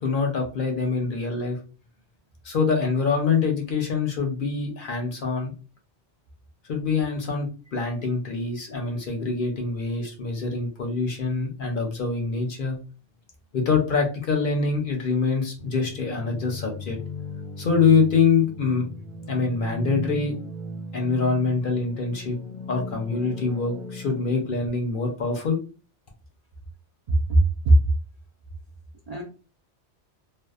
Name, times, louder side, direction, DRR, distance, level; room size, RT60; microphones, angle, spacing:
voice 1, 0.0-1.6 2.4-5.5 6.7-12.8 13.5-17.0 17.6-18.8 19.3-20.4 20.9-22.4 22.7-25.6, left 4 dB, 55° left, 2 dB, 0.7 m, -25 dB
sound 1, 15.6-24.7, left 1 dB, 15° right, 0.7 m, -37 dB
voice 2, 27.1-27.8 29.1-29.2, right 1 dB, 55° right, -1 dB, 0.4 m, -18 dB
2.6 x 2.1 x 2.3 m, 0.35 s
omnidirectional pair, 1.2 m